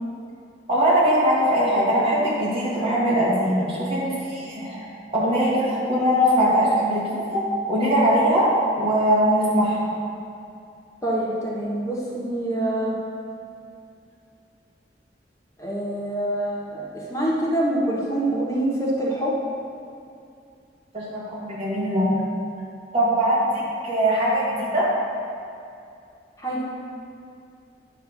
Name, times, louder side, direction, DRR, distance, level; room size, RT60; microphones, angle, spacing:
voice 1, 0.7-7.4 7.7-9.9 20.9-22.1 22.9-24.9, equal, 35° right, -8 dB, 2.1 m, -21 dB
voice 2, 11.0-13.0 15.6-19.3 26.4-26.6, right 1 dB, 15° left, -5 dB, 1.1 m, -25 dB
9.7 x 3.3 x 6.6 m, 2.5 s
head